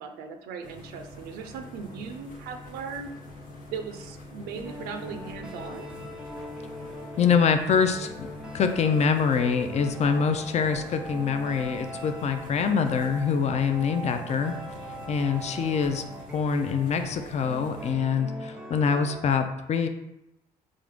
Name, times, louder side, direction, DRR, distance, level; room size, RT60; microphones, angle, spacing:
voice 1, 0.0-3.1 3.7-5.9, right 6 dB, 75° right, 6 dB, 0.4 m, -38 dB
sound 1, 0.6-17.9, left 3 dB, 60° left, 0.9 m, -45 dB
sound 2, 4.6-19.2, equal, 5° right, 0.6 m, -41 dB
voice 2, 7.2-8.1 8.5-14.5 15.1-16.0 16.3-19.9, left 6 dB, 45° left, 7 dB, 0.4 m, -25 dB
3.7 x 2.5 x 3.5 m, 0.87 s
supercardioid pair, 60°, 16 cm